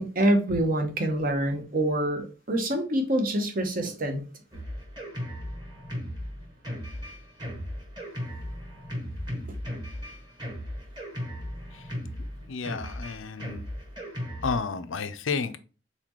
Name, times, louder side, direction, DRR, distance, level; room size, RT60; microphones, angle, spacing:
voice 1, 0.0-4.2, right 1 dB, 45° right, 5 dB, 0.9 m, -26 dB
Drum kit, 4.5-14.6, equal, 20° right, 1.3 m, -36 dB
voice 2, 12.5-13.6 14.4-15.6, left 5 dB, 80° left, 10 dB, 0.6 m, -31 dB
4.1 x 4.0 x 3.0 m, 0.36 s
head